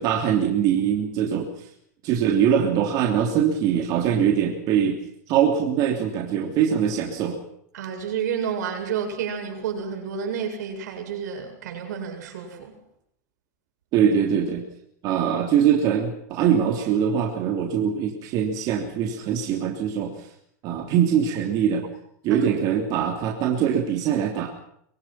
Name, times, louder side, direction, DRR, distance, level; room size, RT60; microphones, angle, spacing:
voice 1, 0.0-1.7 2.0-5.0 5.3-7.4 13.9-14.7 15.0-20.3 20.6-21.9 22.2-24.5, right 8 dB, 45° right, 2 dB, 3.3 m, -22 dB
voice 2, 7.7-12.7 22.3-22.5, right 7 dB, 85° right, 5 dB, 7.8 m, -30 dB
24.0 x 24.0 x 5.9 m, 0.69 s
supercardioid pair, 140°, 9 cm